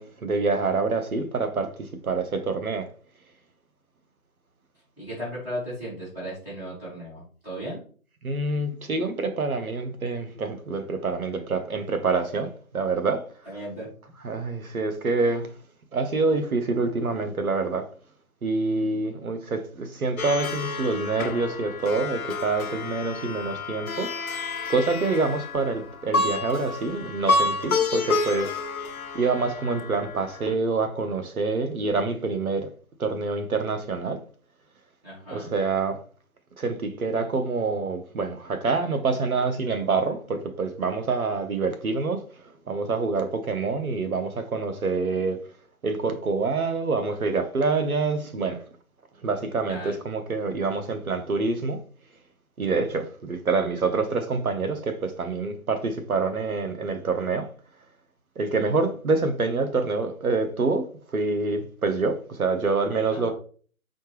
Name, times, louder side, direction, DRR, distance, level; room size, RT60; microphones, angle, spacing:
voice 1, 0.0-1.7 2.0-2.9 8.2-13.2 14.2-15.5 15.9-17.9 18.4-24.1 24.7-28.6 29.1-32.7 33.0-34.2 35.3-36.0 36.6-42.2 42.7-45.4 45.8-48.6 49.2-51.8 52.6-57.5 58.4-60.9 61.1-63.3, right 3 dB, 85° right, 1.0 m, -26 dB
voice 2, 5.0-7.8 13.5-13.9 35.0-35.5 49.7-50.0 63.1-63.3, equal, 5° right, 2.1 m, -36 dB
Plucked string instrument, 20.2-30.5, left 3 dB, 75° left, 0.8 m, -29 dB
4.4 x 3.8 x 3.2 m
hypercardioid pair, 170°, 42 cm